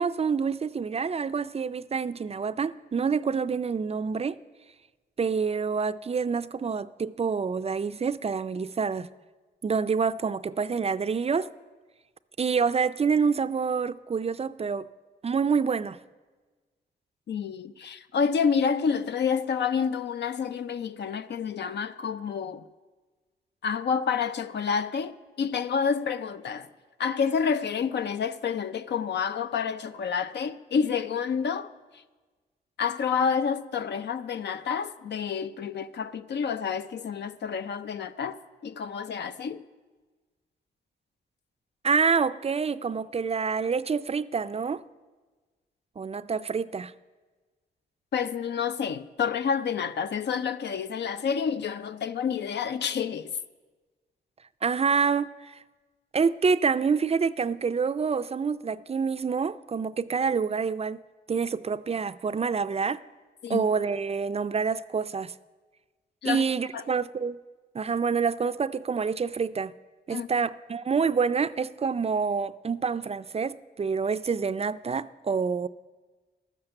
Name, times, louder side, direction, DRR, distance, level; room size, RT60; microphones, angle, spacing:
voice 1, 0.0-4.4 5.2-9.1 9.6-11.5 12.4-14.9 15.2-16.0 41.8-44.8 46.0-46.9 54.6-55.6 56.1-61.0 61.3-63.0 63.5-65.3 66.2-67.4 67.7-69.7 70.1-75.7, right 5 dB, 35° right, 0.4 m, -27 dB
voice 2, 17.3-22.6 23.6-26.7 27.0-32.0 32.8-39.6 48.1-53.3 63.4-63.7 66.2-66.5 66.7-66.8 70.1-70.3, left 6 dB, 70° left, 0.5 m, -29 dB
12.0 x 7.3 x 7.7 m
cardioid pair, 65°, 18 cm